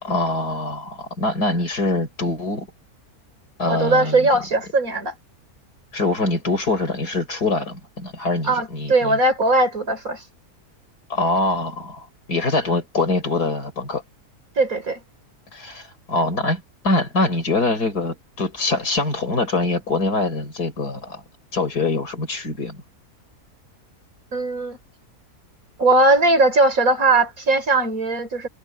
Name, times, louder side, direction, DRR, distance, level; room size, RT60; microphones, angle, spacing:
voice 1, 0.0-2.7 3.6-4.3 5.9-9.2 11.1-14.0 15.5-21.2 21.5-22.8, left 2 dB, 80° left, 5.2 m, -24 dB
voice 2, 3.7-5.1 8.4-10.2 14.6-15.0 24.3-24.8 25.8-28.5, right 2 dB, 60° right, 5.3 m, -19 dB
omnidirectional pair, 1.6 m